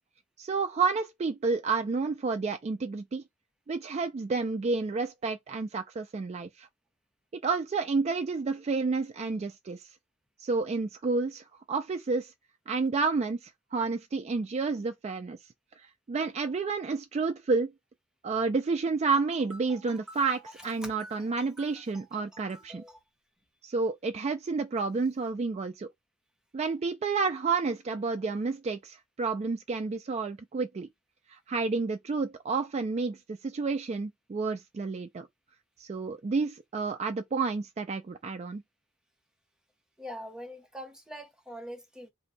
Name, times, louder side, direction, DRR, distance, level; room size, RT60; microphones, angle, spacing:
voice 1, 0.4-3.2 3.7-6.7 7.4-9.9 10.4-12.3 12.7-15.4 15.8-17.7 18.2-22.8 23.6-25.9 26.5-30.9 31.3-35.3 35.8-38.6, right 4 dB, 35° right, 0.3 m, -30 dB
voice 2, 19.5-20.4 20.8-23.0 40.0-42.1, equal, 5° right, 0.7 m, -45 dB
2.6 x 2.2 x 4.0 m
head